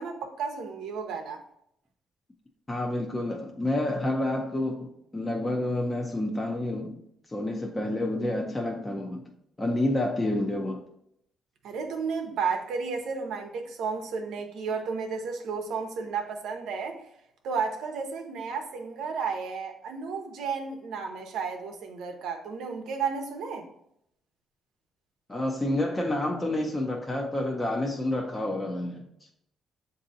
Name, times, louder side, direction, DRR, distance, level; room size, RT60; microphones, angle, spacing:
voice 1, 0.0-1.4 11.6-17.0 17.4-23.7, right 5 dB, 80° right, 4 dB, 0.8 m, -33 dB
voice 2, 2.7-7.0 7.3-9.2 9.6-10.8 25.3-29.1, left 1 dB, 15° left, 0 dB, 0.6 m, -29 dB
7.3 x 2.7 x 2.7 m, 0.75 s
cardioid pair, 90°, 0 cm